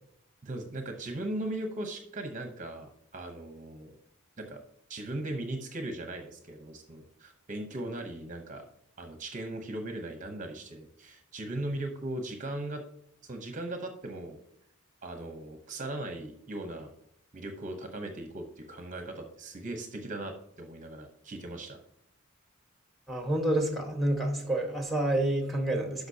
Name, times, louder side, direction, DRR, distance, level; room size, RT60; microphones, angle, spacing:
voice 1, 0.4-3.9 4.4-4.6 4.9-8.6 9.0-12.8 13.2-14.4 15.0-16.9 17.3-21.8, right 1 dB, 35° right, 4 dB, 0.8 m, -38 dB
voice 2, 23.1-26.1, right 1 dB, ahead, 2 dB, 1.2 m, -28 dB
12.5 x 5.1 x 2.8 m, 0.71 s
head